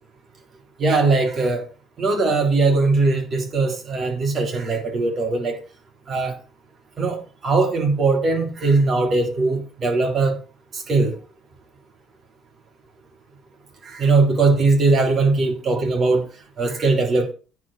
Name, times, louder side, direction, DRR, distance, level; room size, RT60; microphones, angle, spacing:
voice 1, 0.8-1.7 2.0-5.6 6.1-6.4 7.0-10.4 10.7-11.1 13.8-16.3 16.6-17.3, right 3 dB, 40° right, 3.5 m, -20 dB
10.0 x 5.0 x 6.4 m
figure-of-eight pair, 55°, 0 cm